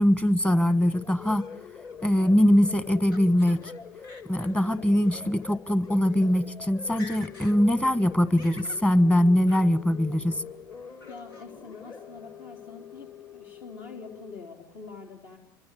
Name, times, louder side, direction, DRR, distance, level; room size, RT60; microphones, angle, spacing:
voice 1, 0.0-1.4 2.0-3.7 4.3-10.4, equal, 10° left, 15 dB, 1.4 m, -22 dB
sound 1, 0.7-14.4, left 7 dB, 40° left, 2.8 m, -45 dB
Laughter, 2.2-3.7 4.0-4.7 5.1-5.2 5.9-6.0 6.2-6.5 6.8-7.6 7.9-8.9 9.5-9.7 10.1-10.6 11.0-11.5, left 2 dB, 85° left, 3.0 m, -48 dB
voice 2, 11.1-15.4, left 4 dB, 60° left, 2 dB, 4.0 m, -45 dB
27.0 x 25.0 x 8.5 m, 0.78 s
hypercardioid pair, 85°, 11 cm